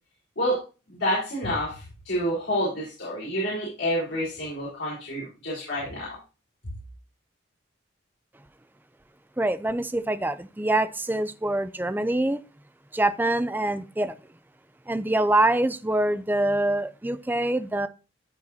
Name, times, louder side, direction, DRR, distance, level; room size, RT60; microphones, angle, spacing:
voice 1, 0.4-6.2, equal, 70° left, 4.4 m, -28 dB
voice 2, 9.4-12.4 12.9-14.2 14.9-17.9, right 1 dB, 10° right, 0.5 m, -25 dB
13.5 x 4.9 x 2.8 m
head